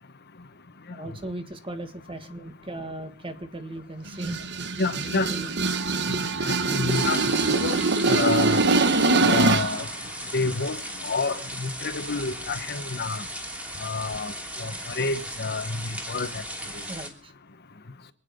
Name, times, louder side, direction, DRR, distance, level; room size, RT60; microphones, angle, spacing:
voice 1, 0.9-4.4 5.3-5.5 16.9-17.3, right 1 dB, 25° right, 1.7 m, -37 dB
sound 1, 4.1-9.8, right 3 dB, 55° right, 1.2 m, -23 dB
voice 2, 4.8-5.3 6.1-7.8 8.1-8.6 9.2-9.9 10.3-10.8 11.0-13.2 13.8-14.3 14.6-15.8 16.1-16.4, left 3 dB, 50° left, 1.1 m, -28 dB
sound 2, 6.9-17.1, equal, 5° right, 2.8 m, -37 dB
26.5 x 9.7 x 5.3 m
head